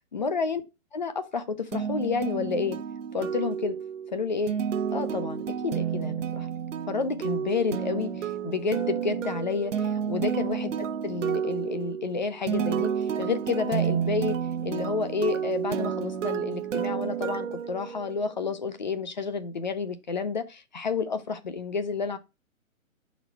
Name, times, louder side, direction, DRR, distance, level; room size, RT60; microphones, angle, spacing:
voice 1, 0.1-0.6 0.9-2.8 3.1-3.8 4.1-4.5 4.9-6.5 6.9-14.4 14.6-22.2, left 5 dB, 35° left, 0.5 m, -30 dB
sound 1, 1.7-18.4, right 8 dB, 65° right, 0.9 m, -31 dB
5.2 x 4.0 x 4.5 m
hypercardioid pair, 160°, 41 cm